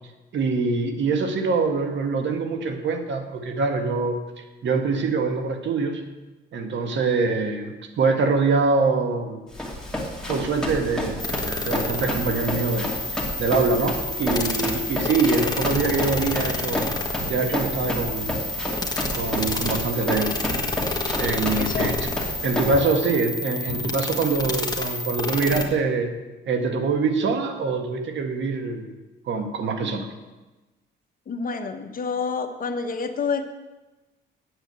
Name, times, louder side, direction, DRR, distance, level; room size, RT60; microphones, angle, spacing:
voice 1, 0.3-6.0 6.5-9.4 10.3-16.9 17.3-18.4 19.1-20.3 21.2-22.1 22.4-26.1 26.5-28.9 29.3-30.1, right 4 dB, 65° right, 6 dB, 1.6 m, -24 dB
Run, 9.5-22.8, left 1 dB, 5° left, 2.5 m, -31 dB
sound 1, 11.2-25.7, left 2 dB, 20° left, 1.6 m, -29 dB
Walk footsteps, 17.2-17.4 18.2-18.5 18.8-20.2 20.5-20.7 21.1-21.3 21.6-21.8 22.1-22.4 22.7-22.9 23.6-24.3, equal, 85° right, 4.9 m, -38 dB
voice 2, 21.6-21.9 31.3-33.5, left 5 dB, 45° left, 6 dB, 1.2 m, -28 dB
8.6 x 8.2 x 8.1 m, 1.1 s
cardioid pair, 90°, 20 cm